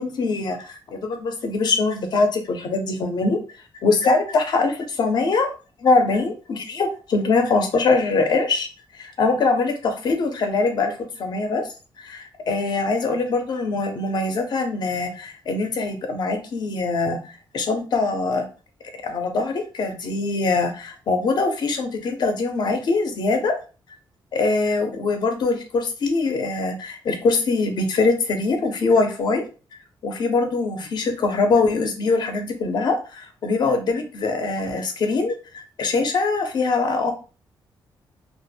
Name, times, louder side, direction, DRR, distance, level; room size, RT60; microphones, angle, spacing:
voice 1, 0.0-3.4 3.8-5.5 5.8-8.7 9.0-11.7 12.0-18.4 19.0-23.6 24.3-29.4 30.0-37.1, left 3 dB, 55° left, 5 dB, 0.6 m, -23 dB
2.1 x 2.1 x 3.3 m, 0.34 s
cardioid pair, 135°, 9 cm